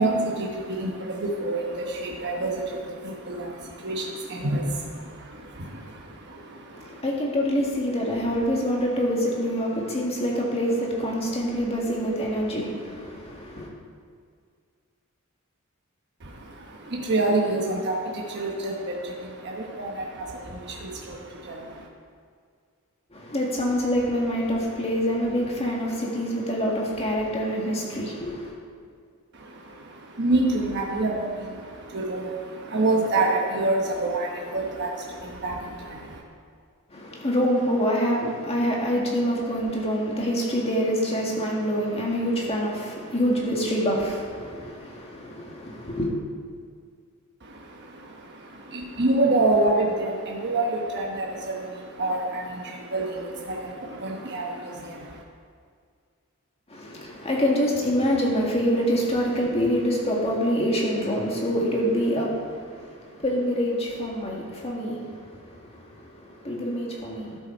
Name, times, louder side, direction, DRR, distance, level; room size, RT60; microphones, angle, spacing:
voice 1, 0.0-7.0 16.2-21.9 29.3-36.2 47.4-55.2, right 2 dB, 50° right, -1 dB, 1.1 m, -28 dB
voice 2, 6.7-13.7 23.1-28.5 36.9-46.1 56.7-67.4, equal, 25° left, -2 dB, 1.8 m, -26 dB
12.5 x 6.9 x 4.4 m, 2.1 s
head